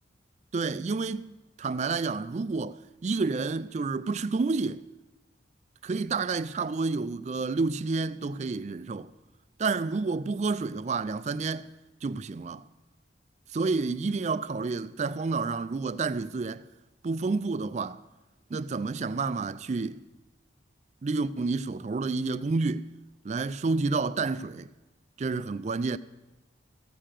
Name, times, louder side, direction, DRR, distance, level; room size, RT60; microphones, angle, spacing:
voice 1, 0.5-1.3 1.6-4.8 5.8-9.1 9.6-11.7 12.0-12.6 13.5-16.6 17.0-18.0 18.5-20.0 21.0-22.9 23.2-24.7 25.2-26.0, right 4 dB, 35° right, 0.3 m, -29 dB
15.0 x 6.5 x 7.5 m
head